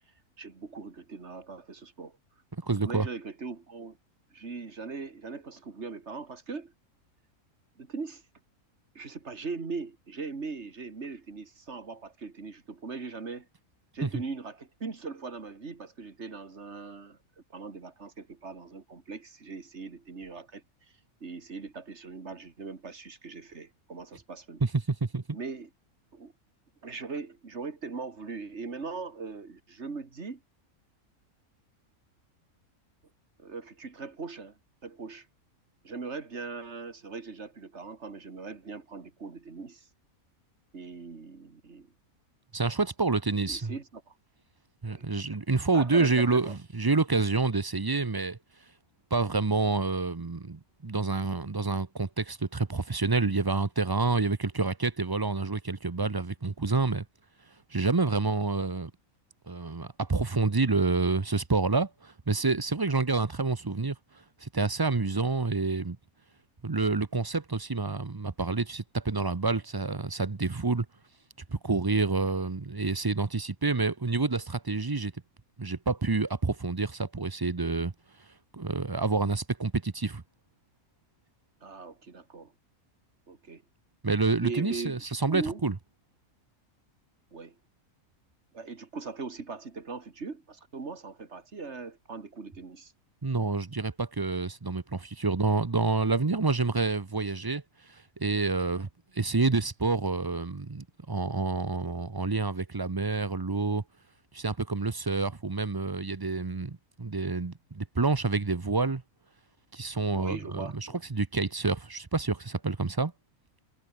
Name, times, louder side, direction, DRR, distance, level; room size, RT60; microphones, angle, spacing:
voice 1, 0.4-2.2 2.8-4.0 4.3-6.7 7.8-8.2 8.9-13.5 13.9-17.2 17.5-20.9 21.2-24.6 25.3-25.7 26.1-26.3 26.8-30.4 33.4-35.3 35.8-39.9 40.7-41.9 43.4-44.1 44.9-45.1 45.7-46.6 81.6-82.5 83.3-83.6 84.4-85.6 87.3-87.6 88.5-92.9 110.1-111.0, right 4 dB, 50° right, 2.5 m, -40 dB
voice 2, 2.6-3.1 14.0-14.1 24.6-25.2 42.5-43.7 44.8-48.4 49.1-57.0 57.7-58.9 59.5-64.0 64.4-66.0 66.6-70.9 71.5-75.1 75.6-77.9 78.5-80.2 84.0-85.7 93.2-97.6 98.2-98.9 99.1-103.8 104.3-109.0 109.7-113.1, right 3 dB, 25° right, 0.5 m, -28 dB
omnidirectional pair, 1.5 m